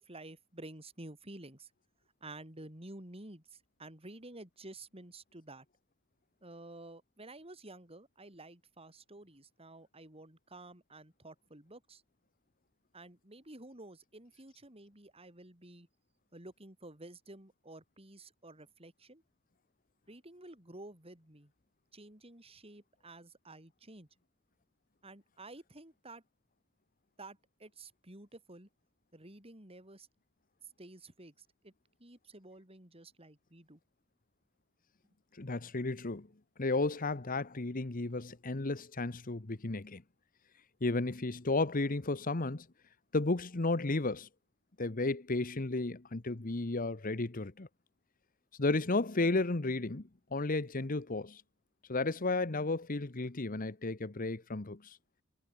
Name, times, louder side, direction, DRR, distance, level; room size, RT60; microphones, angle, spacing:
voice 1, 0.0-1.7 2.2-5.7 6.4-12.0 12.9-15.9 16.3-19.2 20.1-21.5 21.9-24.1 25.0-26.2 27.2-28.7 29.1-30.1 30.8-31.7 32.0-33.8, right 2 dB, 30° right, 5.7 m, -51 dB
voice 2, 35.4-36.3 36.6-40.0 40.8-42.7 43.1-44.3 44.8-47.7 48.6-51.4 51.9-55.0, left 2 dB, 45° left, 1.1 m, -33 dB
head